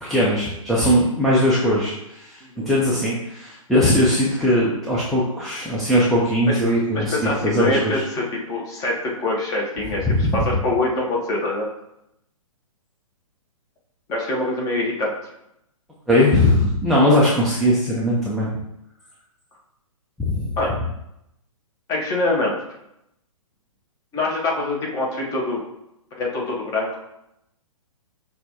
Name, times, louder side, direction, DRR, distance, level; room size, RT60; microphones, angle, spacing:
voice 1, 0.0-8.0 10.1-10.4 16.1-18.5 20.2-20.5, left 1 dB, ahead, -8 dB, 0.3 m, -19 dB
voice 2, 6.9-11.7 14.1-15.2 20.6-20.7 21.9-22.6 24.1-25.6 26.2-27.0, left 2 dB, 20° left, -2 dB, 0.8 m, -24 dB
5.8 x 2.3 x 2.8 m, 0.84 s
figure-of-eight pair, 125°, 18 cm